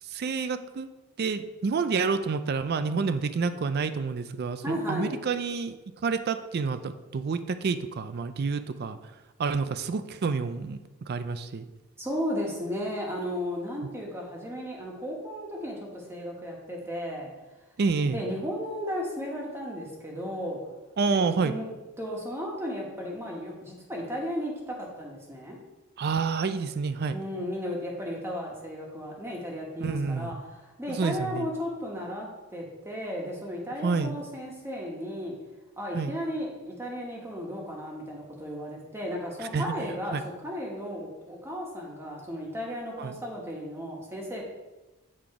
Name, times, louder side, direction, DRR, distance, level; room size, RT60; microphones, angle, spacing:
voice 1, 0.0-0.9 1.2-11.7 17.8-18.2 21.0-21.6 26.0-27.2 29.8-30.4 30.9-31.5 33.8-34.2 35.9-36.1 39.4-40.2 43.0-43.2, right 4 dB, 45° right, 11 dB, 0.4 m, -29 dB
voice 2, 4.6-5.2 12.0-17.3 18.1-20.6 21.1-21.7 22.0-25.6 27.1-30.3 30.8-35.3 35.8-40.2 40.4-44.4, equal, 10° right, -2 dB, 1.2 m, -34 dB
8.6 x 3.8 x 4.7 m, 1.1 s
head